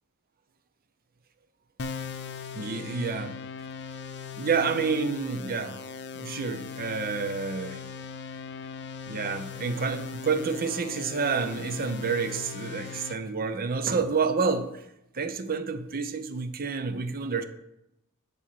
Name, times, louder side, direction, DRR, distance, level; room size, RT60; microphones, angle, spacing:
sound 1, 1.8-13.1, left 6 dB, 50° left, 0.6 m, -39 dB
voice 1, 2.5-3.3 4.4-5.8 6.1-7.8 9.1-14.8 15.1-17.4, right 5 dB, 40° right, 10 dB, 0.7 m, -29 dB
10.5 x 4.1 x 6.8 m, 0.83 s
head